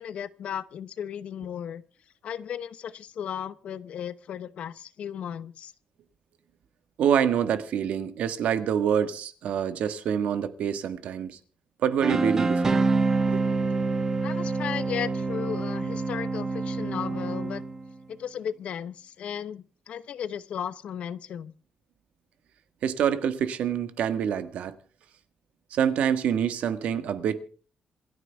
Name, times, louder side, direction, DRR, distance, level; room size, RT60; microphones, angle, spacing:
voice 1, 0.0-1.8 2.2-5.7 14.2-17.6 18.1-21.5, left 9 dB, 60° left, 0.8 m, -35 dB
voice 2, 7.0-11.4 11.8-12.8 13.2-13.4 22.8-24.7 25.7-27.4, right 8 dB, 75° right, 1.5 m, -26 dB
sound 1, 12.0-17.9, right 3 dB, 25° right, 0.9 m, -26 dB
27.5 x 9.5 x 3.5 m
wide cardioid pair, 170°, 2 cm